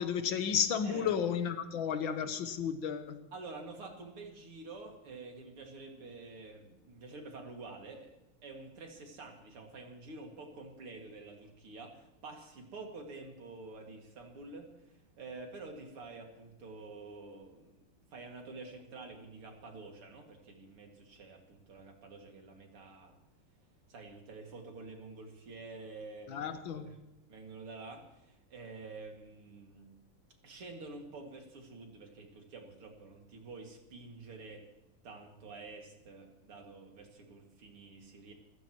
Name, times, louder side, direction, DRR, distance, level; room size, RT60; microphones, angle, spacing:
voice 1, 0.0-3.2 26.3-27.0, left 7 dB, 65° left, 8 dB, 1.9 m, -33 dB
voice 2, 0.8-1.2 3.3-8.1 8.4-17.7 18.1-23.1 23.9-26.4 26.7-27.0 27.3-29.9 30.4-34.6 35.0-38.3, right 3 dB, 85° right, 1 dB, 3.3 m, -48 dB
26.0 x 14.0 x 3.1 m, 0.91 s
omnidirectional pair, 2.4 m